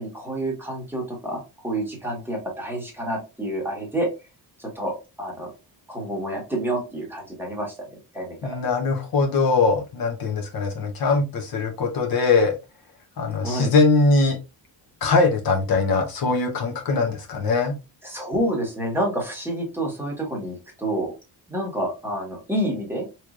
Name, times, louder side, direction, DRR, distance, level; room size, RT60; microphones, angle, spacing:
voice 1, 0.0-4.1 4.6-5.5 5.9-7.9 8.1-8.6 13.4-13.7 18.0-21.1 21.5-23.1, right 1 dB, 5° right, -1 dB, 1.2 m, -28 dB
voice 2, 8.4-12.5 13.2-14.4 15.0-17.8, left 3 dB, 55° left, 3 dB, 0.9 m, -21 dB
4.7 x 3.1 x 2.5 m, 0.27 s
wide cardioid pair, 165°, 42 cm